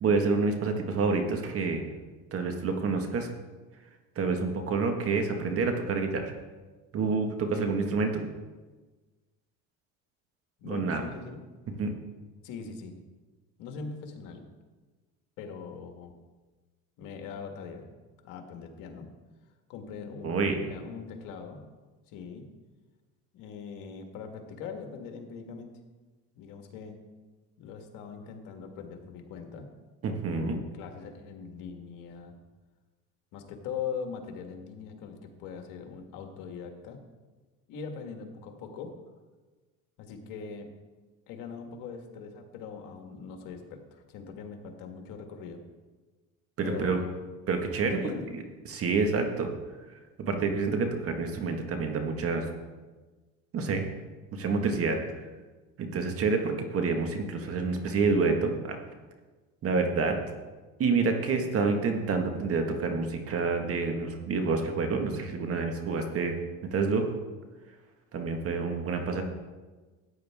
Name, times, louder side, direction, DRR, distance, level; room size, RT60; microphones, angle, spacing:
voice 1, 0.0-1.8 2.3-3.3 4.1-6.3 6.9-8.2 10.6-11.0 11.8-11.9 20.2-20.6 30.0-30.6 46.6-47.0 47.5-48.1 48.7-49.5 50.2-52.5 53.5-53.8 54.3-55.0 55.8-58.8 59.6-60.2 60.8-66.4 66.7-67.1 68.1-69.2, right 4 dB, 45° right, 5 dB, 1.6 m, -28 dB
voice 2, 10.6-11.4 12.4-12.9 13.6-14.4 15.4-16.1 17.0-17.8 18.2-19.1 19.7-21.6 22.1-22.5 23.3-25.8 26.3-26.9 27.6-29.7 30.3-32.4 33.3-37.0 37.7-38.9 40.0-40.7 41.3-45.6 46.6-47.2 47.9-48.3 61.4-61.6, left 6 dB, 80° left, 4 dB, 1.7 m, -41 dB
14.0 x 9.1 x 3.6 m, 1.3 s
cardioid pair, 115°, 32 cm